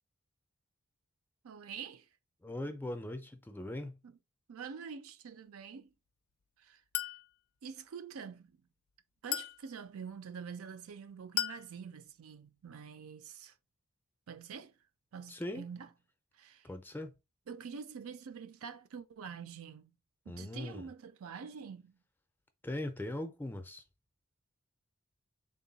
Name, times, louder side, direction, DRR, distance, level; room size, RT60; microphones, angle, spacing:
voice 1, 1.4-2.1 4.0-4.1 4.5-5.9 6.6-6.8 7.6-8.6 9.2-13.5 14.3-14.7 15.1-15.9 16.4-16.7 17.5-20.0 20.3-21.9, right 6 dB, 80° right, 0.4 m, -46 dB
voice 2, 2.4-4.0 15.3-15.7 16.6-17.1 20.3-20.9 22.6-23.8, left 1 dB, 10° left, 0.4 m, -40 dB
Chink clink, 6.9-7.3 9.3-9.6 11.4-11.7, left 11 dB, 80° left, 0.4 m, -35 dB
3.7 x 2.2 x 3.9 m
head